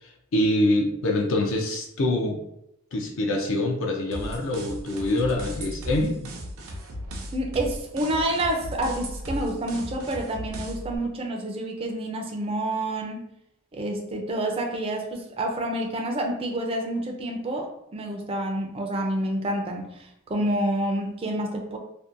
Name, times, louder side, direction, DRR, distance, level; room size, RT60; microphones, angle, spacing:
voice 1, 0.0-2.4 2.9-6.1, left 1 dB, 65° left, 1 dB, 0.4 m, -25 dB
sound 1, 4.1-11.0, equal, 85° right, 0.5 m, -36 dB
voice 2, 7.3-13.2 13.7-21.8, right 1 dB, 25° right, 2 dB, 0.4 m, -28 dB
2.6 x 2.1 x 2.5 m, 0.81 s
head